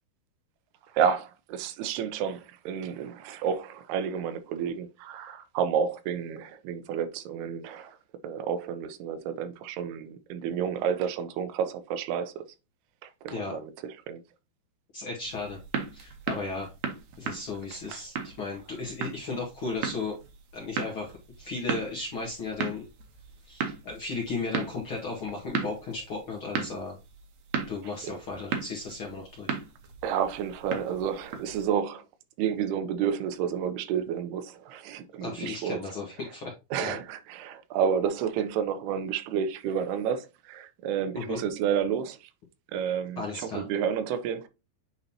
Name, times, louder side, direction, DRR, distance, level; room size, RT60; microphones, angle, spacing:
voice 1, 0.9-8.0 8.2-12.5 13.0-14.2 17.9-18.0 28.0-28.2 30.0-32.0 32.4-35.8 36.7-42.3 42.7-44.5, right 8 dB, 90° right, 2.8 m, -30 dB
voice 2, 14.9-15.6 15.9-16.7 17.2-20.2 20.5-21.1 21.4-22.9 23.4-27.0 27.7-29.6 35.2-36.5 36.8-36.9 41.1-41.4 43.2-43.7, left 3 dB, 55° left, 1.5 m, -35 dB
sound 1, 15.2-31.7, right 6 dB, 65° right, 1.9 m, -37 dB
8.9 x 4.0 x 2.8 m
omnidirectional pair, 4.4 m